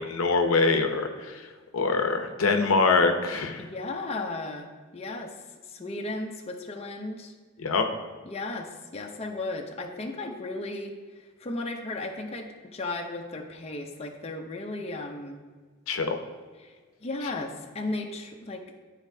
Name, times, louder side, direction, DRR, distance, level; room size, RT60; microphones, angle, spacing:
voice 1, 0.0-1.4 1.7-3.6 7.6-7.9 15.9-16.2, left 4 dB, 85° left, 5 dB, 0.7 m, -24 dB
voice 2, 3.6-5.4 5.6-7.3 8.2-15.4 16.6-16.8 17.0-18.8, left 2 dB, 30° left, 2 dB, 0.6 m, -35 dB
11.5 x 4.1 x 2.7 m, 1.5 s
head